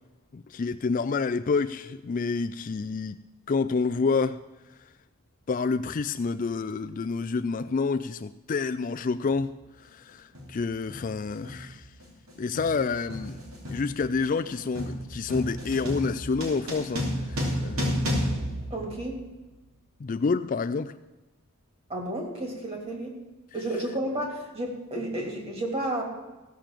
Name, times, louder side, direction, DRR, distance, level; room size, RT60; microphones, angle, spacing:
voice 1, 0.3-3.2 3.5-4.4 5.5-9.5 9.8-11.9 12.4-13.4 13.7-18.4 20.0-20.9, left 4 dB, 35° left, 0.3 m, -28 dB
sound 1, 10.3-10.6 10.9-19.4, equal, 70° right, 3.5 m, -32 dB
voice 2, 18.7-19.2 21.9-23.2 23.5-26.0, right 1 dB, 25° right, 2.7 m, -32 dB
16.0 x 7.0 x 7.4 m
head